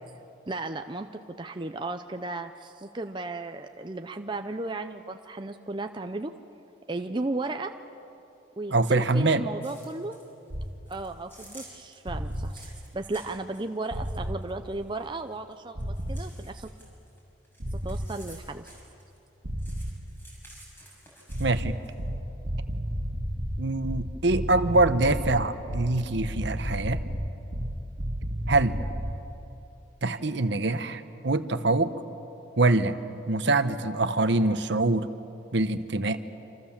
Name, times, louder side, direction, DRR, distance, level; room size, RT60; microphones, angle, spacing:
voice 1, 0.5-1.1 1.4-6.3 6.9-7.7 8.6-10.2 10.9-16.7 17.7-18.7 30.0-30.1, right 2 dB, 25° right, 6 dB, 0.6 m, -35 dB
voice 2, 8.7-9.4 21.4-21.8 23.6-27.0 28.5-28.8 30.0-31.9 32.6-32.9 33.3-35.1 35.5-36.2, right 2 dB, 60° right, 10 dB, 1.1 m, -24 dB
sound 1, 9.6-10.3 10.6-15.5 15.8-19.3 19.6-21.9, right 1 dB, 10° left, 6.4 m, -52 dB
sound 2, 10.5-10.7 12.1-12.5 13.9-14.4 15.7-16.3 17.6-18.1 19.4-20.0 21.3-29.2, equal, 80° right, 2.0 m, -32 dB
28.0 x 26.5 x 7.4 m, 3.0 s
head